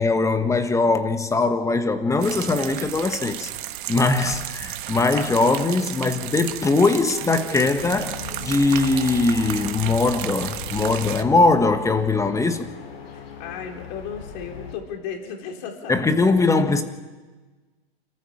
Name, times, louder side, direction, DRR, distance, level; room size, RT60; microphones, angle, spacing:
voice 1, 0.0-3.5 3.9-12.7 15.9-16.8, left 3 dB, 10° left, 1.4 m, -21 dB
sound 1, 2.2-11.2, right 13 dB, 50° right, 1.3 m, -33 dB
sound 2, 7.7-14.7, left 6 dB, 70° left, 5.5 m, -38 dB
voice 2, 13.1-16.1, left 7 dB, 45° left, 4.7 m, -35 dB
28.0 x 14.5 x 7.4 m
figure-of-eight pair, 110°, 31 cm